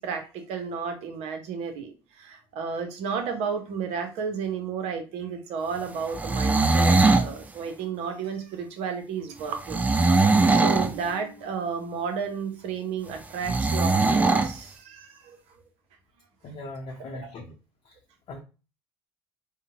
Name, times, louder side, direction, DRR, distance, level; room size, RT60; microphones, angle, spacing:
voice 1, 0.0-15.4 17.1-17.3, right 6 dB, 60° right, 6 dB, 0.8 m, -33 dB
sound 1, 6.1-7.3 9.7-10.9 13.4-14.5, right 3 dB, 10° right, 0.4 m, -20 dB
voice 2, 16.4-17.5 17.9-18.0 18.3-18.4, left 2 dB, 40° left, -1 dB, 0.7 m, -39 dB
3.7 x 2.1 x 2.7 m, 0.32 s
hypercardioid pair, 65°, 12 cm